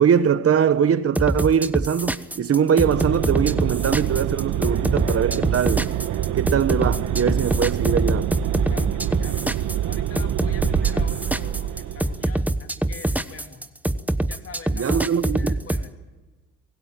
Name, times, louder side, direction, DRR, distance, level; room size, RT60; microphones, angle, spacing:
voice 1, 0.0-5.9 6.3-8.3 14.7-15.6, right 8 dB, 50° right, 1.4 m, -21 dB
sound 1, 1.1-15.8, right 1 dB, 5° right, 1.0 m, -24 dB
sound 2, 2.8-12.4, right 11 dB, 75° right, 1.2 m, -26 dB
voice 2, 8.7-13.7 14.3-15.0 15.4-16.0, left 5 dB, 50° left, 2.6 m, -44 dB
24.5 x 18.0 x 9.0 m
cardioid pair, 90°, 30 cm